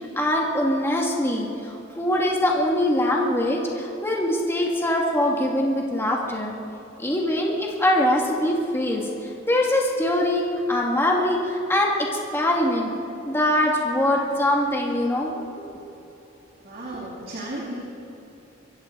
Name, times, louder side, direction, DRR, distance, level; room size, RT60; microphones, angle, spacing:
voice 1, 0.2-6.6 7.0-9.1 9.5-12.9 13.3-15.8, left 1 dB, 15° left, -1 dB, 2.1 m, -23 dB
voice 2, 16.6-17.8, right 1 dB, 50° right, -5 dB, 2.9 m, -34 dB
24.0 x 15.0 x 4.0 m, 2.9 s
head